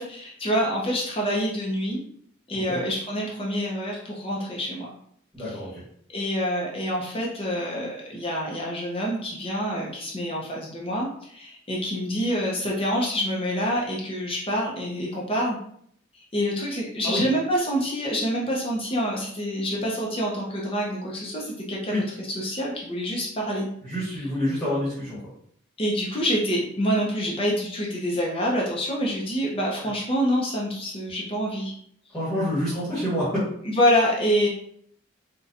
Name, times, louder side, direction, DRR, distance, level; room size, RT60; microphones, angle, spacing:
voice 1, 0.0-2.0 2.5-4.9 5.4-5.7 6.1-15.6 16.3-23.7 24.0-24.3 25.8-31.7 33.6-34.5, equal, 25° left, -3 dB, 0.5 m, -26 dB
voice 2, 5.3-5.7 17.0-17.2 21.9-22.0 23.9-25.2 32.1-33.2, left 1 dB, 5° left, -12 dB, 1.1 m, -27 dB
4.0 x 2.2 x 2.5 m, 0.65 s
head